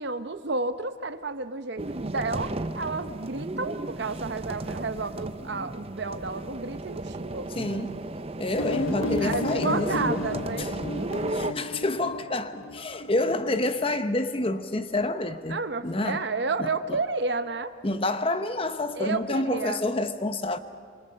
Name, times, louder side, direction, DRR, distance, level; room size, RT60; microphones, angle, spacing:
voice 1, 0.0-7.5 9.2-10.8 15.5-17.7 18.9-19.8, right 3 dB, 60° right, 0.8 m, -31 dB
sound 1, 1.8-11.5, right 2 dB, 30° right, 0.6 m, -34 dB
voice 2, 7.6-8.0 8.4-10.3 10.6-10.7 11.2-16.2 16.6-17.0 17.8-20.6, left 2 dB, 30° left, 0.9 m, -28 dB
sound 2, 8.6-14.0, left 3 dB, 85° left, 0.6 m, -33 dB
27.0 x 24.5 x 5.7 m
head